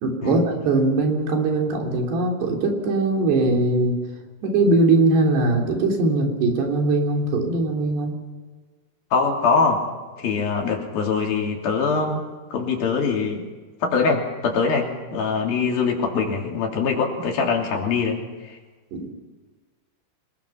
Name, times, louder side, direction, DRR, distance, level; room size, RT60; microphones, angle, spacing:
voice 1, 0.0-4.0 4.4-8.2 18.9-19.1, right 2 dB, 85° right, 1 dB, 5.4 m, -21 dB
voice 2, 9.1-9.8 10.2-13.4 13.8-18.2 18.4-18.6, left 5 dB, 65° left, 1 dB, 4.7 m, -23 dB
27.5 x 20.0 x 5.8 m, 1.4 s
omnidirectional pair, 4.7 m